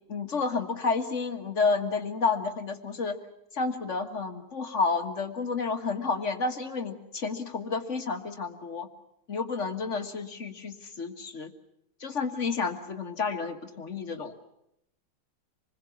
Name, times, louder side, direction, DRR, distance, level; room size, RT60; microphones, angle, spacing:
voice 1, 0.1-3.2 3.5-8.9 9.3-11.5 12.0-14.3, left 4 dB, 35° left, 7 dB, 1.8 m, -30 dB
26.5 x 21.0 x 7.2 m, 0.81 s
omnidirectional pair, 2.3 m